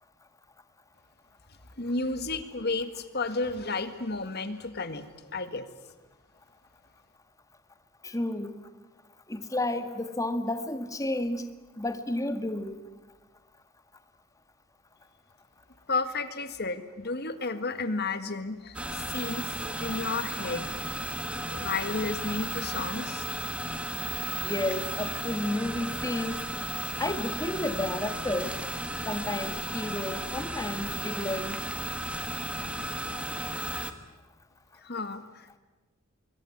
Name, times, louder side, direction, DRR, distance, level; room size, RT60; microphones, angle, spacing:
voice 1, 1.8-5.7 15.9-19.5 19.8-20.7 21.5-23.3 34.8-35.6, left 3 dB, 50° left, 11 dB, 1.9 m, -32 dB
voice 2, 8.0-8.5 9.3-11.5 11.8-12.8 24.4-26.4 27.0-28.5 29.1-31.6, left 1 dB, 15° left, 9 dB, 1.8 m, -31 dB
sound 1, 18.7-33.9, right 1 dB, 5° right, 1.5 m, -34 dB
26.0 x 22.5 x 9.7 m, 1.1 s
head